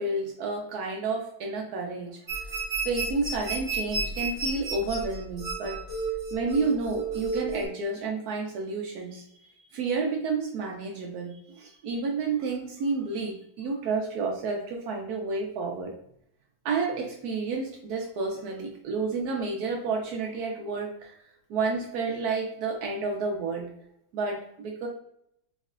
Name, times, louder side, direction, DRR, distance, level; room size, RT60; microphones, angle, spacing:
voice 1, 0.0-5.8 6.3-15.9 16.6-23.7 24.1-24.9, right 4 dB, 90° right, 1 dB, 0.8 m, -30 dB
sound 1, 2.3-7.7, right 3 dB, 50° right, 0.4 m, -32 dB
3.6 x 3.1 x 2.3 m, 0.75 s
omnidirectional pair, 2.2 m